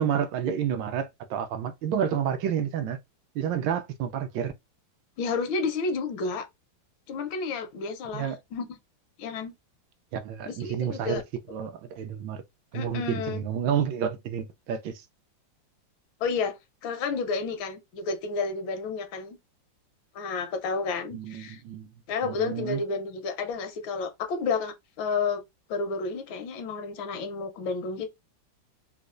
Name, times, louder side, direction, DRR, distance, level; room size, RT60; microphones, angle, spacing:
voice 1, 0.0-3.0 3.3-4.5 8.1-8.4 10.1-11.2 11.5-12.4 12.7-15.0 21.1-21.9 22.2-22.8, right 8 dB, 75° right, 1.2 m, -29 dB
voice 2, 5.2-6.5 7.1-8.8 9.2-9.5 10.5-11.2 12.7-13.4 16.2-16.6 16.8-19.4 20.1-21.6 22.1-25.4 25.7-28.1, left 4 dB, 80° left, 1.5 m, -31 dB
4.1 x 2.3 x 2.4 m
omnidirectional pair, 2.1 m